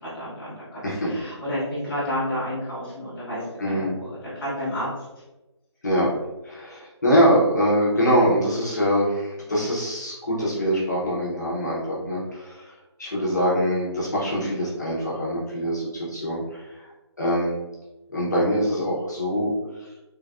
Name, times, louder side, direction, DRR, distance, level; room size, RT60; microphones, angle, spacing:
voice 1, 0.0-0.8 1.1-4.1 4.3-4.9, equal, 5° left, -18 dB, 0.8 m, -30 dB
voice 2, 3.6-3.9 5.8-6.1 6.4-12.7 13.0-16.7 17.2-17.6 18.1-19.5 19.8-19.9, equal, 40° left, -7 dB, 0.8 m, -23 dB
3.2 x 2.5 x 2.3 m, 1.0 s
figure-of-eight pair, 175°, 15 cm